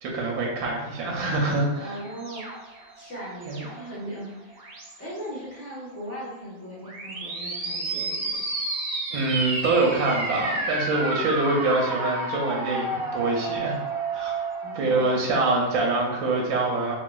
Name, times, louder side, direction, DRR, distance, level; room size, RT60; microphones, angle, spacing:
voice 1, 0.0-2.0 3.5-3.6 9.1-13.8 14.1-14.4 14.7-17.0, right 2 dB, 90° right, -1 dB, 1.1 m, -25 dB
sound 1, 1.7-4.0 4.5-5.1 6.8-15.0, right 2 dB, 55° right, 0.9 m, -31 dB
voice 2, 1.8-2.5 2.9-8.4 14.6-15.1, equal, 10° left, -7 dB, 0.8 m, -38 dB
3.9 x 2.5 x 2.2 m, 1.1 s
omnidirectional pair, 1.5 m